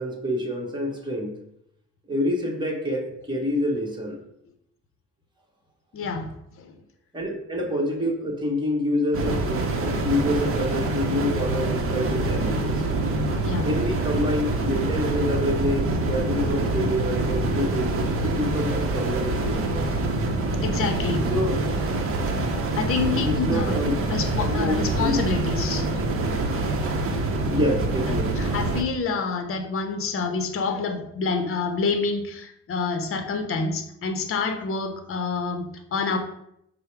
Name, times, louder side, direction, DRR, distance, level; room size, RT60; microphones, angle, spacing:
voice 1, 0.0-1.4 2.1-4.2 7.1-12.8 13.6-19.8 21.2-21.6 23.0-23.9 24.3-25.2 27.4-28.5, left 1 dB, 15° right, -1 dB, 1.1 m, -27 dB
voice 2, 5.9-6.3 6.6-6.8 13.4-13.7 20.6-21.3 22.7-23.8 24.1-25.9 26.5-26.6 28.4-36.2, left 4 dB, 45° left, 7 dB, 0.7 m, -27 dB
sound 1, 9.1-28.8, right 2 dB, 45° right, 0.7 m, -25 dB
4.6 x 2.1 x 4.5 m, 0.76 s
cardioid pair, 90°, 30 cm